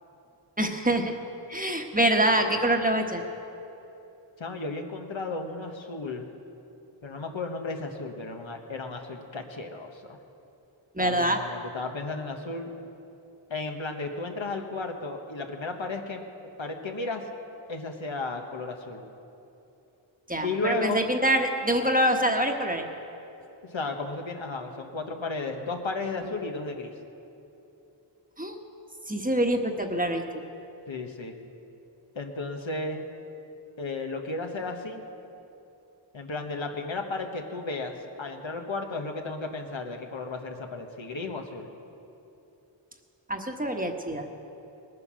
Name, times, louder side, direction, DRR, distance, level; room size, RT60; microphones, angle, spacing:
voice 1, 0.6-1.1 1.5-3.2 10.9-11.4 20.3-22.9 28.4-28.6 29.1-30.4 43.3-44.3, right 1 dB, 20° right, 3 dB, 1.2 m, -25 dB
voice 2, 4.4-6.3 7.0-10.2 11.0-12.7 13.5-16.2 16.6-17.2 17.7-19.0 20.4-21.0 23.6-26.9 30.9-31.4 32.1-33.0 33.8-35.0 36.1-41.7, left 3 dB, 75° left, 3 dB, 1.3 m, -34 dB
20.0 x 9.6 x 6.3 m, 2.9 s
wide cardioid pair, 65°, 46 cm